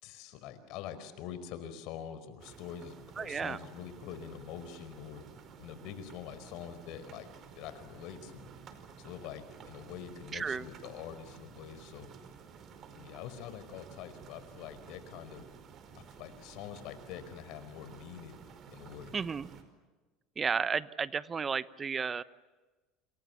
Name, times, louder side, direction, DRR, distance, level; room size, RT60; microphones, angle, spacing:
voice 1, 0.0-5.2 5.6-7.3 7.6-8.5 9.0-12.1 12.9-15.5 15.9-18.4 18.7-19.1, left 9 dB, 65° left, 11 dB, 4.8 m, -45 dB
sound 1, 2.4-19.6, right 6 dB, 45° right, 4.9 m, -53 dB
voice 2, 3.2-3.6 10.3-10.7 19.1-19.5 20.4-22.2, right 6 dB, 25° right, 16 dB, 1.0 m, -33 dB
28.5 x 27.5 x 7.2 m, 1.3 s
supercardioid pair, 105°, 0 cm